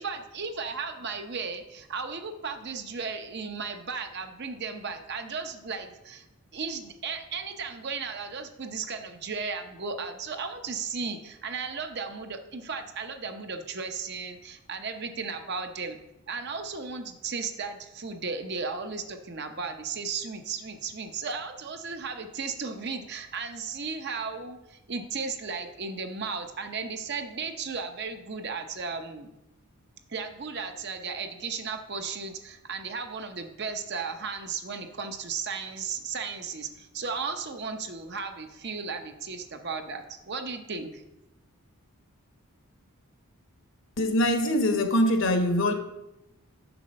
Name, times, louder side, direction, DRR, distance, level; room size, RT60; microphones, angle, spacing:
voice 1, 0.0-6.2 6.5-16.0 16.3-29.3 30.1-41.0, right 5 dB, 50° right, 6 dB, 0.7 m, -35 dB
voice 2, 44.0-45.7, left 1 dB, 55° left, 5 dB, 1.0 m, -23 dB
7.0 x 6.6 x 5.3 m, 0.92 s
head